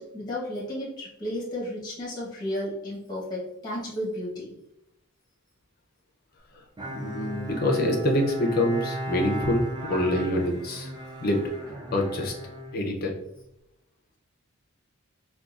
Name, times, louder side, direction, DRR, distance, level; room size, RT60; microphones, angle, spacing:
voice 1, 0.0-4.5, left 1 dB, 20° left, -6 dB, 1.0 m, -33 dB
Bowed string instrument, 6.8-13.4, right 1 dB, 20° right, 0.4 m, -36 dB
voice 2, 6.9-9.6 9.9-10.9 11.2-11.4 11.9-12.3 12.7-13.1, left 1 dB, 45° left, 0 dB, 0.6 m, -25 dB
3.7 x 2.4 x 2.4 m, 0.82 s
head